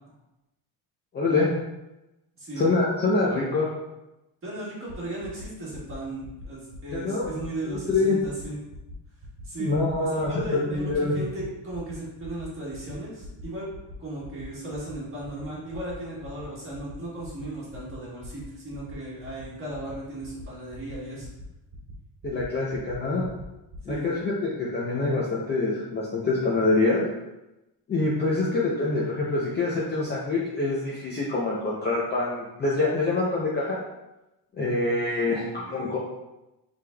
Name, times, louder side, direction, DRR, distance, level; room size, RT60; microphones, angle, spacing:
voice 1, 1.1-1.5 2.6-3.7 6.9-7.3 7.7-8.2 9.6-11.2 22.2-23.2 23.9-27.1 27.9-33.8 34.6-36.0, left 3 dB, 25° left, -5 dB, 0.4 m, -25 dB
voice 2, 4.4-8.6 9.4-13.7 14.0-21.3 23.9-24.1 35.3-36.0, right 1 dB, 30° right, -6 dB, 1.5 m, -36 dB
sound 1, 4.9-5.0 5.2-5.5 5.7-6.0 6.2-6.4 6.7-6.9 7.2-7.4 7.7-7.9 8.2-8.4 8.7-8.9 9.2-9.4 9.7-9.9 10.2-10.4 10.7-10.9 11.2-11.4 11.7-11.9 12.2-12.4 12.7-12.9 13.2-13.4 13.7-13.9 14.2-14.4 14.7-14.9 15.2-15.4 15.7-15.9 16.2-16.4 16.7-16.9 17.2-17.4 17.7-17.9 18.2-18.4 18.7-18.9 19.2-19.4 19.7-19.9 20.2-20.4 20.7-20.9 21.2-21.4 21.7-21.9 22.2-22.4 22.7-22.9 23.2-23.4 23.7-23.9, right 1 dB, 60° right, 1.1 m, -44 dB
4.9 x 3.5 x 2.2 m, 0.97 s
cardioid pair, 160°, 46 cm